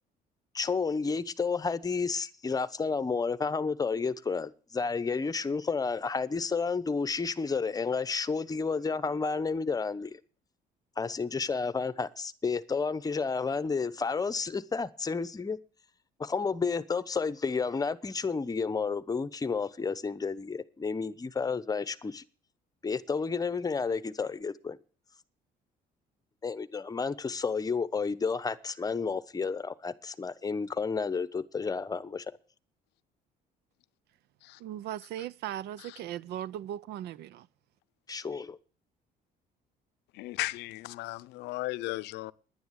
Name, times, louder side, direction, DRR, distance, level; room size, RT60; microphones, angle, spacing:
voice 1, 0.5-10.2 11.0-15.6 16.2-22.2 22.8-24.8 26.4-32.2 38.1-38.6, left 4 dB, 20° left, 0.9 m, -31 dB
voice 2, 34.6-37.5, right 12 dB, 75° right, 0.7 m, -38 dB
voice 3, 40.1-42.3, left 19 dB, 85° left, 0.6 m, -35 dB
10.5 x 10.5 x 8.2 m
cardioid pair, 110°, 17 cm